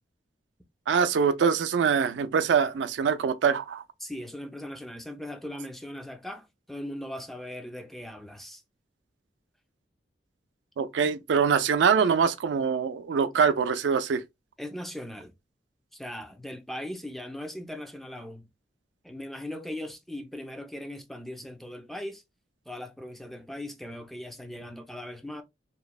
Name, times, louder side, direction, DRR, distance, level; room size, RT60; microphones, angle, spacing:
voice 1, 0.9-3.8 10.8-14.2, right 6 dB, 80° right, 0.3 m, -24 dB
voice 2, 4.0-8.6 14.6-15.3 15.9-18.5 19.0-22.2 22.7-25.4, left 1 dB, ahead, 0.3 m, -39 dB
2.9 x 2.0 x 2.3 m
head